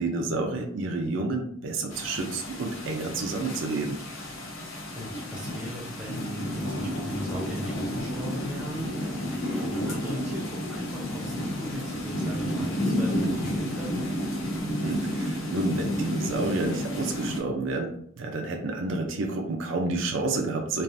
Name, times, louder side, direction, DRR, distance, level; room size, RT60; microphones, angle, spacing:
voice 1, 0.0-4.0 14.8-20.8, right 3 dB, 60° right, 2 dB, 0.4 m, -30 dB
sound 1, 1.9-17.4, equal, 70° left, 0.9 m, -31 dB
voice 2, 5.0-14.0, equal, 5° right, -5 dB, 0.6 m, -38 dB
3.2 x 2.5 x 2.5 m, 0.65 s
head